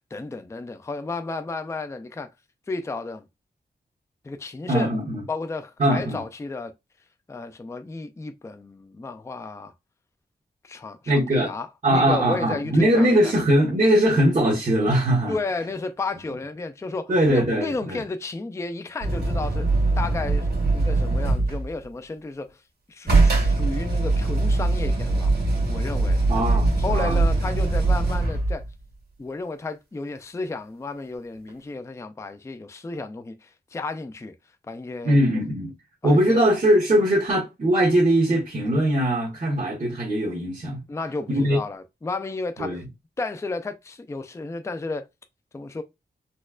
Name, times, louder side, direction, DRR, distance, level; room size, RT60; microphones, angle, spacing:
voice 1, 0.1-2.3 2.7-3.2 4.2-4.9 5.3-6.7 7.3-9.7 10.6-11.0 11.3-13.3 15.3-19.6 20.0-22.6 22.9-25.3 25.7-26.2 26.8-28.6 29.2-34.3 34.7-35.2 36.0-36.4 40.9-42.8 43.2-45.1 45.5-45.8, left 3 dB, 15° left, 0.3 m, -32 dB
voice 2, 4.7-5.2 5.8-6.2 11.1-11.5 11.8-15.3 17.1-18.0 26.3-27.2 35.0-35.7 36.0-40.8 41.3-41.6 42.6-42.8, right 1 dB, 50° right, 1.2 m, -21 dB
sound 1, 19.0-21.7 23.1-28.7 31.5-31.6, right 3 dB, 70° right, 1.6 m, -22 dB
4.2 x 2.3 x 2.3 m
wide cardioid pair, 105°, 17 cm